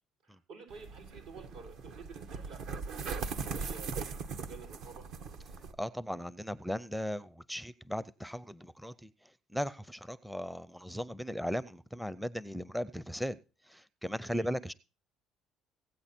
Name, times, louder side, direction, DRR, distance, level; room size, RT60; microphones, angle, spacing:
voice 1, 0.2-5.1 14.2-14.5, right 5 dB, 85° right, 6.6 m, -51 dB
sound 1, 0.7-5.7, right 5 dB, 70° right, 1.5 m, -40 dB
voice 2, 5.8-9.1 9.5-13.4 13.7-14.7, equal, ahead, 0.5 m, -37 dB
17.0 x 8.7 x 4.3 m
cardioid pair, 120°, 0 cm